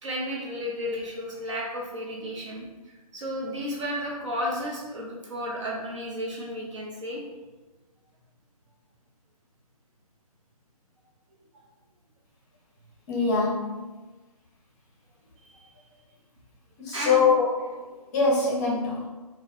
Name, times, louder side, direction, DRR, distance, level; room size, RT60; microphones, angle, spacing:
voice 1, 0.0-7.2 15.4-15.8 16.9-17.3, equal, 50° right, -3 dB, 1.0 m, -33 dB
voice 2, 13.1-14.0 16.8-19.1, left 4 dB, 25° left, -4 dB, 0.7 m, -24 dB
3.8 x 2.3 x 3.0 m, 1.2 s
figure-of-eight pair, 140°, 20 cm